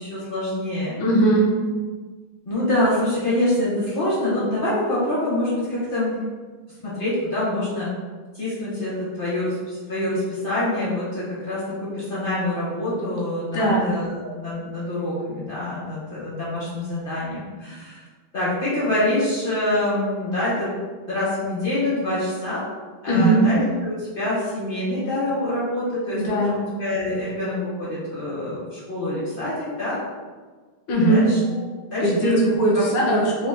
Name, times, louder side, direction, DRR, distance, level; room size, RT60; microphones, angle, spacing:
voice 1, 0.0-1.0 2.5-6.2 6.8-7.9 8.3-18.0 18.3-20.7 21.1-22.6 23.0-26.2 26.5-30.0 31.0-31.4 31.9-32.8, left 1 dB, 40° left, -8 dB, 0.8 m, -25 dB
voice 2, 1.0-1.5 13.0-13.1 13.5-13.9 23.1-23.4 26.1-26.5 30.9-31.2 32.0-33.5, right 1 dB, 80° left, -3 dB, 1.6 m, -19 dB
3.9 x 2.1 x 3.4 m, 1.4 s
omnidirectional pair, 2.2 m